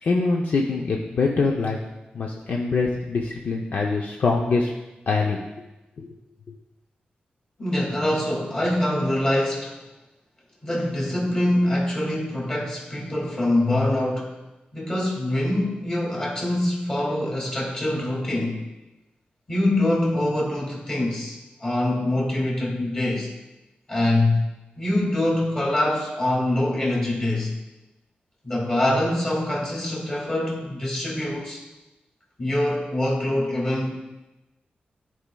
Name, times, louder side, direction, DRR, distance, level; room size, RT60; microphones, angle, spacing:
voice 1, 0.0-1.8 2.1-4.7 5.1-5.4 6.0-6.1, left 4 dB, 60° left, 0 dB, 0.6 m, -24 dB
voice 2, 7.6-9.8 10.6-14.4 14.7-18.6 19.5-23.3 23.9-24.4 24.8-27.5 28.4-31.6 32.4-34.0, left 1 dB, 25° left, -3 dB, 2.1 m, -24 dB
13.0 x 4.8 x 2.3 m, 1.0 s
wide cardioid pair, 140°, 3 cm